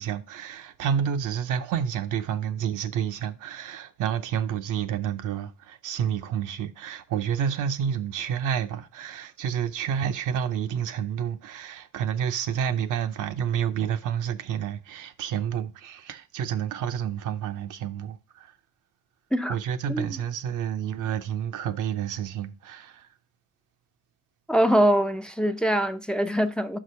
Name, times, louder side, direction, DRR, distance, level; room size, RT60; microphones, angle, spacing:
voice 1, 0.0-18.5 19.5-23.1, right 8 dB, 85° right, 0.8 m, -29 dB
voice 2, 24.5-26.8, equal, 5° left, 0.5 m, -23 dB
5.8 x 4.9 x 5.6 m
cardioid pair, 90°, 30 cm